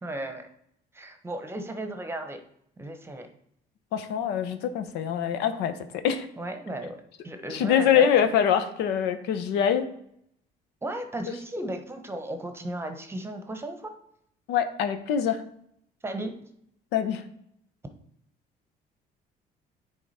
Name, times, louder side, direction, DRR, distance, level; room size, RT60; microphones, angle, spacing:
voice 1, 0.0-0.5 0.9-2.4 2.8-3.3 6.4-7.0 7.2-8.1 10.8-13.9 16.0-16.3, right 1 dB, 15° right, 6 dB, 0.9 m, -35 dB
voice 2, 3.9-5.8 6.0-6.3 7.5-9.9 14.5-15.4 16.9-17.2, left 8 dB, 85° left, 9 dB, 0.8 m, -24 dB
9.4 x 3.6 x 4.2 m, 0.72 s
cardioid pair, 110°, 17 cm